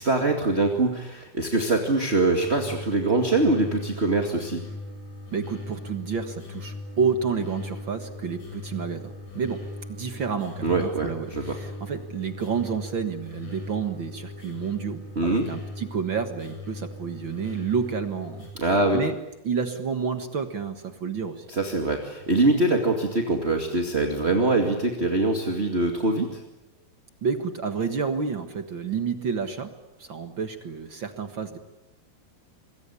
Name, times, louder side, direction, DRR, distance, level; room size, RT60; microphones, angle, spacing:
voice 1, 0.0-4.6 10.6-11.6 15.1-15.4 18.5-19.0 21.5-26.4, right 2 dB, 20° right, 3 dB, 1.7 m, -23 dB
sound 1, 2.4-18.5, left 2 dB, 55° left, 9.6 m, -39 dB
voice 2, 5.3-19.1 19.4-21.5 27.2-29.7 30.0-31.6, right 6 dB, 50° right, 8 dB, 1.4 m, -30 dB
26.0 x 22.5 x 9.9 m, 0.99 s
omnidirectional pair, 4.4 m